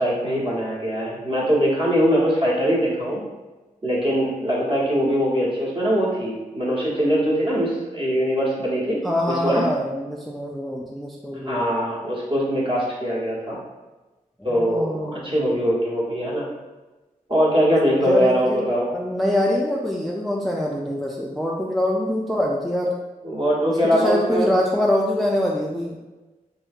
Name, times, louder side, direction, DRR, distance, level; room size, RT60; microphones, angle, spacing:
voice 1, 0.0-3.2 3.8-9.0 9.3-9.7 11.4-13.6 14.4-16.5 17.3-18.8 23.2-24.5, equal, 35° right, -5 dB, 1.0 m, -22 dB
voice 2, 9.0-11.7 14.4-15.5 18.1-18.7 18.9-22.9 23.7-26.0, left 1 dB, ahead, -2 dB, 0.3 m, -24 dB
3.0 x 2.7 x 2.4 m, 1.2 s
cardioid pair, 60°, 15 cm